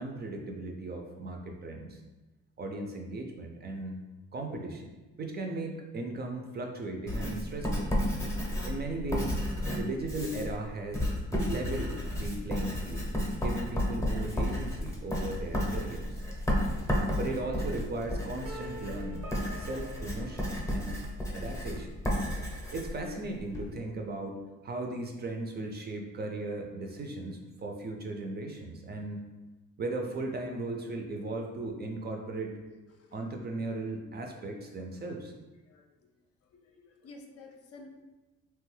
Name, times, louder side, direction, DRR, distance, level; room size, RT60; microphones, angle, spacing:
voice 1, 0.0-2.0 2.6-4.0 4.3-4.9 5.2-7.9 8.7-9.4 9.7-11.1 11.4-13.1 13.4-16.2 17.1-19.3 19.6-21.0 21.3-22.0 22.7-29.2 29.8-32.6 33.1-35.3, right 2 dB, 35° right, 2 dB, 0.4 m, -37 dB
Writing, 7.1-23.7, equal, 10° left, 0.7 m, -32 dB
sound 1, 18.4-21.4, left 1 dB, 80° right, 0.6 m, -47 dB
voice 2, 32.6-33.2 34.3-34.6 35.1-35.2 35.6-36.1 36.5-37.9, left 3 dB, 55° left, 3 dB, 0.5 m, -53 dB
2.9 x 2.2 x 3.1 m, 1.1 s
cardioid pair, 90°, 30 cm